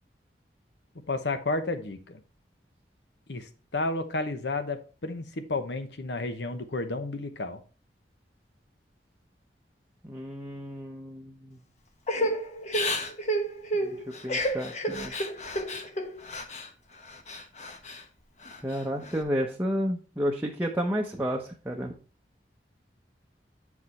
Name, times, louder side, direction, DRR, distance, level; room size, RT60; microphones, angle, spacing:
voice 1, 1.1-2.2 3.3-7.6, left 2 dB, 75° left, 9 dB, 0.9 m, -32 dB
voice 2, 10.0-11.6 13.8-14.0 14.2-15.1 18.6-21.9, equal, 10° right, 0 dB, 0.7 m, -31 dB
Crying sobbing / Breathing, 12.1-16.7 17.1-18.0 18.4-19.2, equal, 40° left, 1.0 m, -31 dB
8.1 x 4.9 x 4.2 m, 0.36 s
head